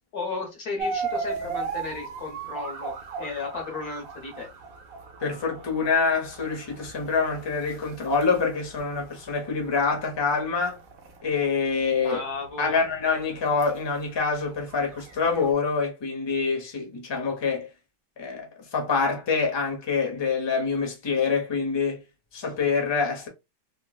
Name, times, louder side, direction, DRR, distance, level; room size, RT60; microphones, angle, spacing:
voice 1, 0.1-2.9 3.2-4.5 12.0-12.8, left 3 dB, 60° left, 1.6 m, -34 dB
sound 1, 0.8-15.5, right 4 dB, 60° right, 1.1 m, -38 dB
voice 2, 5.2-10.8 11.2-12.2 12.6-17.7 18.2-22.0 22.3-23.3, left 5 dB, 35° left, 0.4 m, -26 dB
4.3 x 2.1 x 2.3 m
omnidirectional pair, 1.9 m